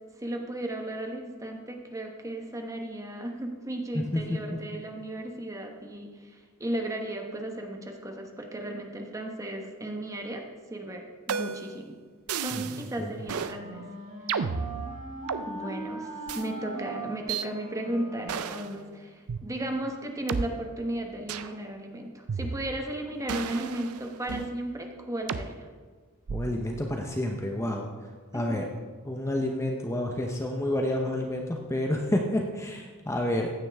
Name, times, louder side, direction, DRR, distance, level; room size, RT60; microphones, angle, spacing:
voice 1, 0.2-10.4 10.7-12.0 12.4-13.9 14.3-14.5 15.5-25.7 28.3-28.6, right 1 dB, 15° right, 3 dB, 1.1 m, -35 dB
sound 1, 11.3-11.8 12.3-12.8 13.3-13.6 14.3-15.4 16.3-16.4 17.3-17.5 18.3-18.7 19.3-19.4 20.3-20.4 21.3-21.5 22.3-22.9 23.3-24.5 25.3-25.5 26.3-26.7, right 6 dB, 75° right, 0.5 m, -33 dB
Wind instrument woodwind instrument, 12.9-19.1, right 2 dB, 35° right, 3.0 m, -41 dB
voice 2, 26.3-27.9 28.3-28.6 29.0-33.5, left 1 dB, 15° left, 2 dB, 0.7 m, -29 dB
15.5 x 9.7 x 3.5 m, 1.5 s
head